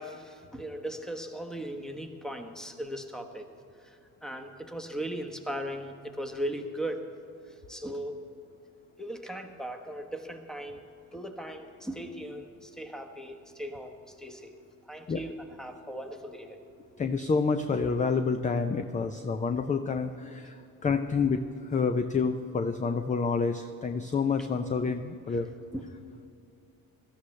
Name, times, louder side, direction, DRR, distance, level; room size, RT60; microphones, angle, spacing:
voice 1, 0.0-3.5 3.8-4.0 4.2-7.1 7.7-8.3 9.0-10.8 11.1-13.9 14.2-14.6 14.9-16.6 25.3-25.4 25.7-25.8, right 1 dB, ahead, 5 dB, 1.1 m, -38 dB
voice 2, 17.0-20.6 20.8-21.4 21.7-25.5, left 5 dB, 20° left, 8 dB, 0.4 m, -28 dB
17.5 x 13.0 x 3.2 m, 2.6 s
cardioid pair, 105°, 37 cm